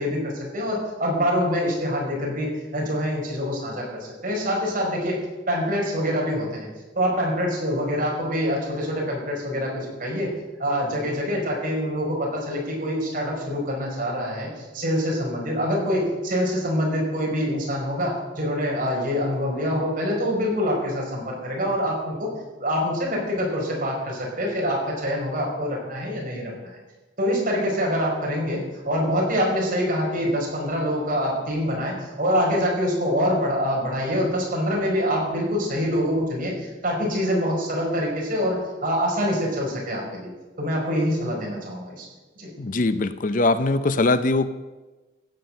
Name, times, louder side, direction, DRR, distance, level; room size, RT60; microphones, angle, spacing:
voice 1, 0.0-5.2 5.5-6.7 7.0-10.3 10.6-22.3 22.6-26.8 27.2-40.3 40.6-42.1 42.4-42.5, equal, 45° right, -2 dB, 5.2 m, -25 dB
voice 2, 42.6-44.5, left 2 dB, 45° left, 12 dB, 0.6 m, -21 dB
15.5 x 7.4 x 7.8 m, 1.2 s
head